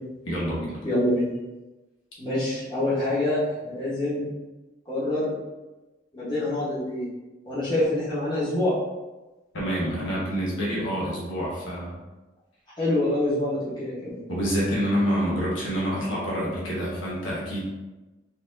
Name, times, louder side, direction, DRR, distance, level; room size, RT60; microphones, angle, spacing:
voice 1, 0.2-0.8 9.5-12.0 14.3-17.6, equal, 85° left, -6 dB, 1.3 m, -27 dB
voice 2, 0.8-1.3 2.2-4.3 4.9-5.3 6.1-7.1 7.5-8.7 12.8-14.2, left 1 dB, 20° left, -11 dB, 1.3 m, -26 dB
4.2 x 2.7 x 2.7 m, 1.1 s
head